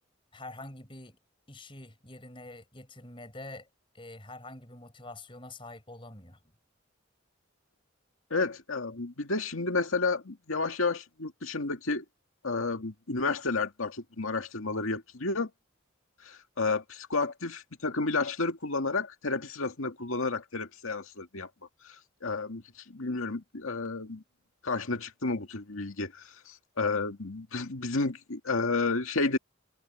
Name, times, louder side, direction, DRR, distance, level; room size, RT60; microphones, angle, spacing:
voice 1, 0.3-1.2 1.5-3.7 3.9-6.4, left 2 dB, 25° left, 4.4 m, -46 dB
voice 2, 8.3-12.0 12.4-15.5 16.2-21.5 21.8-24.2 24.6-29.4, left 3 dB, 90° left, 2.2 m, -31 dB
head